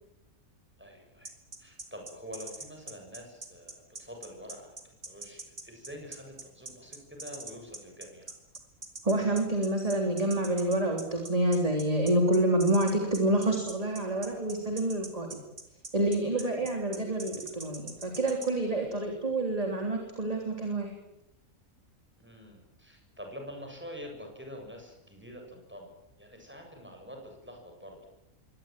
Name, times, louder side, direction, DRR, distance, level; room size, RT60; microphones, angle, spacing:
voice 1, 0.8-1.3 1.6-4.8 5.0-8.3 16.3-16.5 22.2-28.0, equal, 5° right, 2 dB, 7.5 m, -46 dB
sound 1, 1.2-18.5, right 2 dB, 45° right, 3.5 m, -43 dB
voice 2, 9.0-15.4 15.9-20.9, right 1 dB, 25° right, 2 dB, 3.5 m, -28 dB
24.0 x 18.5 x 9.0 m, 0.85 s
omnidirectional pair, 1.5 m